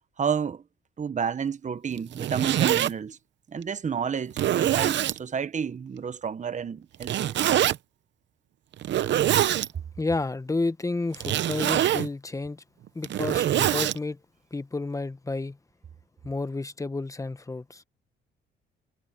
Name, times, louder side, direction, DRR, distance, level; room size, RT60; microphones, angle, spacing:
voice 1, 0.2-0.6 1.0-3.2 3.5-7.4, right 7 dB, 40° right, 1.2 m, -30 dB
Zipper (clothing), 2.0-2.9 3.6-3.7 4.3-5.2 7.0-7.8 8.8-9.7 11.1-12.1 12.9-14.0, right 12 dB, 65° right, 0.8 m, -24 dB
voice 2, 10.0-12.6 12.9-14.2 14.5-15.6 16.2-17.8, left 3 dB, 15° left, 1.0 m, -31 dB
cardioid pair, 90°, 20 cm